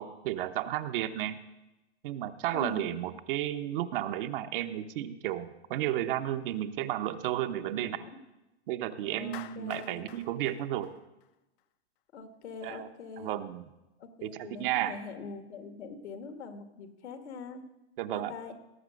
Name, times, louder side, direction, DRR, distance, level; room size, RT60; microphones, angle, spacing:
voice 1, 0.0-1.4 2.0-8.0 8.7-10.9 12.6-12.9 13.2-13.6 14.2-15.0 18.0-18.3, right 12 dB, 50° right, 9 dB, 0.9 m, -33 dB
voice 2, 2.5-3.0 7.6-8.2 9.0-10.0 12.1-13.4 14.0-17.6 18.1-18.5, left 4 dB, 75° left, 7 dB, 1.9 m, -43 dB
Clapping, 9.3-11.6, left 14 dB, 50° left, 0.7 m, -49 dB
17.5 x 7.5 x 6.4 m, 1.0 s
hypercardioid pair, 135°, 34 cm